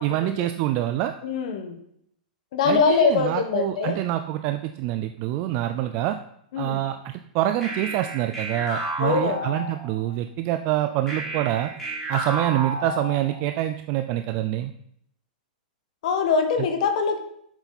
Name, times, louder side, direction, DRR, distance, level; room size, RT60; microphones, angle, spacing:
voice 1, 0.0-1.1 2.6-6.2 6.6-11.7 12.1-14.7 16.6-16.7, right 13 dB, 30° right, 8 dB, 0.4 m, -26 dB
voice 2, 1.2-1.7 2.5-4.0 6.5-6.8 9.0-9.4 16.0-17.2, left 5 dB, 55° left, 7 dB, 1.3 m, -23 dB
sound 1, 7.6-10.1 11.1-13.6, right 2 dB, 10° left, 2.9 m, -32 dB
7.7 x 7.1 x 4.1 m, 0.72 s
supercardioid pair, 165°, 5 cm